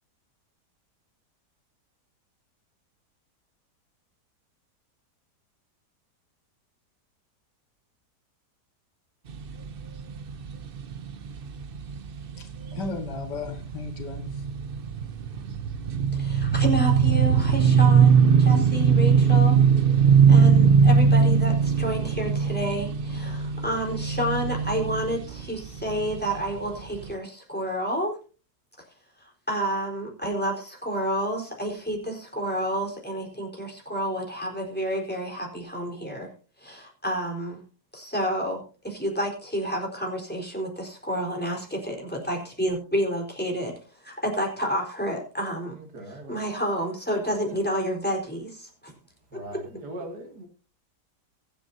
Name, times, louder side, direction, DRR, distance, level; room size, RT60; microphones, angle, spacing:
sound 1, 9.3-26.6 27.0-27.1, right 6 dB, 50° right, 0.7 m, -21 dB
voice 1, 12.4-14.4, left 5 dB, 80° left, 2.4 m, -35 dB
voice 2, 16.1-19.6 20.3-28.2 29.5-36.3 36.6-37.6 37.9-43.7 44.0-45.7 46.3-48.9 49.3-49.6, equal, 5° left, 4.2 m, -30 dB
voice 3, 45.7-46.4 47.5-47.6 49.3-50.5, right 1 dB, 70° right, 3.1 m, -40 dB
23.5 x 8.1 x 2.8 m
omnidirectional pair, 1.8 m